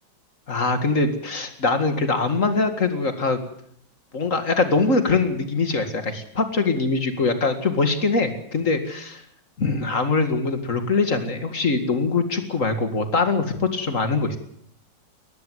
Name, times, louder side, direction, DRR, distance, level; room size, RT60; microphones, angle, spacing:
voice 1, 0.5-3.4 4.1-9.2 9.6-14.4, left 3 dB, 40° left, 8 dB, 2.3 m, -23 dB
19.0 x 15.0 x 9.4 m, 0.69 s
omnidirectional pair, 2.1 m